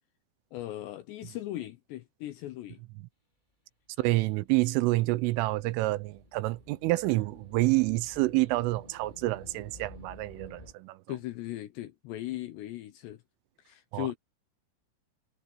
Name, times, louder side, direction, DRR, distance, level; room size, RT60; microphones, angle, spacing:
voice 1, 0.5-2.8 11.1-13.2 13.7-14.2, left 15 dB, 75° left, 2.6 m, -38 dB
voice 2, 4.0-11.0 13.9-14.1, right 20 dB, 80° right, 3.1 m, -28 dB
sound 1, 4.2-10.7, left 2 dB, 15° left, 1.9 m, -53 dB
omnidirectional pair, 5.9 m